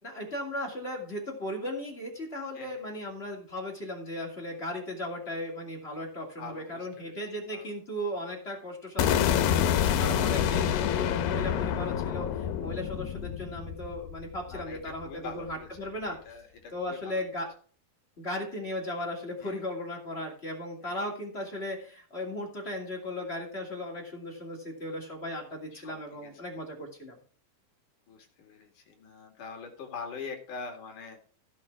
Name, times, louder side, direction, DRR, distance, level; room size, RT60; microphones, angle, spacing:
voice 1, 0.0-16.2 16.7-17.5 18.2-27.2, left 1 dB, 20° left, 1 dB, 2.3 m, -36 dB
voice 2, 6.4-7.2 7.5-7.7 14.5-15.9 16.3-17.2 19.4-19.6 20.8-21.0 25.7-26.3 28.1-31.2, left 4 dB, 55° left, 2 dB, 3.7 m, -44 dB
sound 1, 9.0-15.0, left 9 dB, 85° left, 2.8 m, -27 dB
16.5 x 5.7 x 4.7 m, 0.43 s
omnidirectional pair, 4.5 m